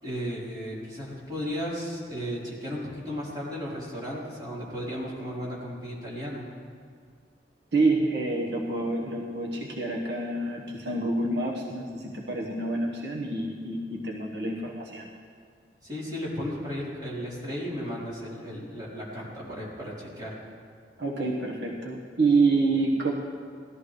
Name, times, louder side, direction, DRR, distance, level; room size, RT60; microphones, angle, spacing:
voice 1, 0.0-6.5 15.8-20.3, equal, 25° right, -8 dB, 4.0 m, -35 dB
voice 2, 7.7-15.1 21.0-23.1, right 3 dB, 75° right, -2 dB, 1.3 m, -27 dB
19.5 x 13.5 x 3.3 m, 2.1 s
head